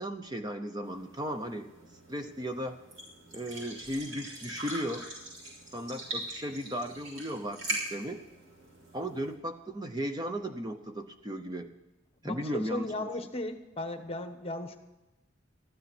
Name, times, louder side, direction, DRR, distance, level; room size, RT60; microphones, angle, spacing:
voice 1, 0.0-1.7 2.1-2.8 3.3-5.1 5.7-8.2 8.9-11.7 12.2-13.1, equal, 20° right, 6 dB, 0.7 m, -36 dB
sound 1, 0.8-9.3, right 1 dB, 70° right, 6.2 m, -42 dB
voice 2, 12.2-14.8, left 1 dB, 30° left, 8 dB, 1.1 m, -36 dB
15.0 x 12.0 x 6.0 m, 1.0 s
head